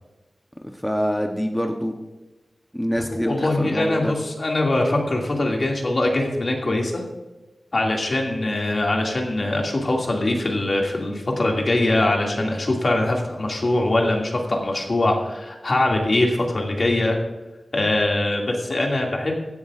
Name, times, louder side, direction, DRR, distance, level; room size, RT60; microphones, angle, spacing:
voice 1, 0.6-1.9 2.7-4.1, equal, 5° left, 3 dB, 0.9 m, -25 dB
voice 2, 3.0-7.0 7.7-17.2 17.7-19.4, left 2 dB, 55° left, 0 dB, 2.3 m, -22 dB
15.5 x 10.5 x 2.5 m, 1.1 s
wide cardioid pair, 65°, 0 cm